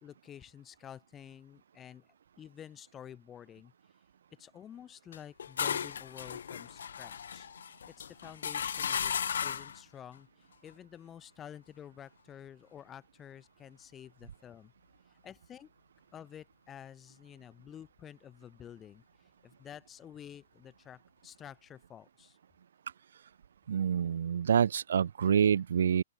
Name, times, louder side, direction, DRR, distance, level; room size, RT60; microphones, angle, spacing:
voice 1, 0.0-2.0 2.4-3.7 4.4-7.5 7.9-9.1 9.4-10.3 10.6-14.7 15.2-15.7 16.1-19.0 19.4-22.4, left 9 dB, 15° left, 1.3 m, -50 dB
sound 1, 5.1-9.8, left 7 dB, 80° left, 0.3 m, -35 dB
voice 2, 23.7-26.0, right 8 dB, 75° right, 1.0 m, -27 dB
open air
hypercardioid pair, 160°, 0 cm